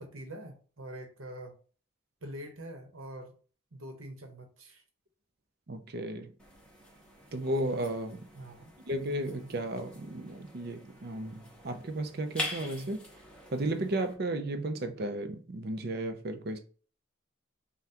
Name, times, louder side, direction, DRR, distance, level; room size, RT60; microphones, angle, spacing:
voice 1, 0.0-1.6 2.2-3.3 3.7-4.8 8.3-8.7, right 1 dB, 80° right, 1.0 m, -44 dB
voice 2, 5.7-6.3 7.3-8.3 8.9-13.0 13.5-16.6, right 1 dB, 50° right, 0.6 m, -34 dB
sound 1, 6.4-14.1, left 1 dB, 5° left, 0.8 m, -44 dB
5.5 x 2.3 x 2.9 m
head